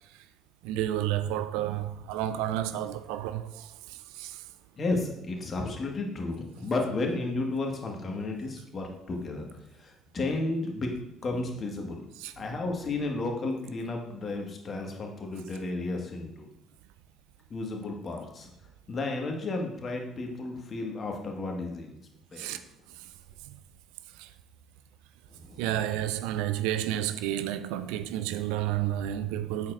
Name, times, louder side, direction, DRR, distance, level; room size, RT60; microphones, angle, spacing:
voice 1, 0.6-4.4 12.2-12.3 22.4-22.6 23.0-23.1 23.4-23.6 24.1-24.3 25.6-29.7, right 12 dB, 70° right, 0.3 m, -31 dB
voice 2, 4.7-9.4 9.7-10.9 11.2-12.1 12.4-16.5 17.5-18.5 18.9-22.0 22.3-22.6 25.3-25.6, left 2 dB, 40° left, 1.6 m, -33 dB
8.2 x 6.6 x 2.5 m
figure-of-eight pair, 50°, 0 cm